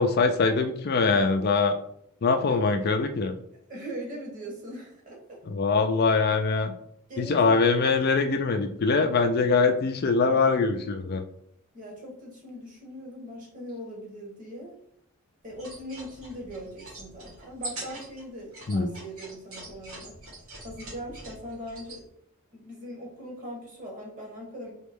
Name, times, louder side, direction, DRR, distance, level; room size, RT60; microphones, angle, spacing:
voice 1, 0.0-1.7 2.2-3.3 5.5-6.7 7.2-11.2 18.7-18.9, left 4 dB, 45° left, 6 dB, 0.4 m, -23 dB
voice 2, 3.7-5.4 7.1-7.5 11.7-14.8 15.4-20.2 20.6-22.1 22.5-24.7, equal, 40° right, -1 dB, 1.3 m, -40 dB
sound 1, 15.5-22.0, right 1 dB, 80° right, 1.8 m, -43 dB
4.2 x 3.0 x 3.6 m, 0.68 s
head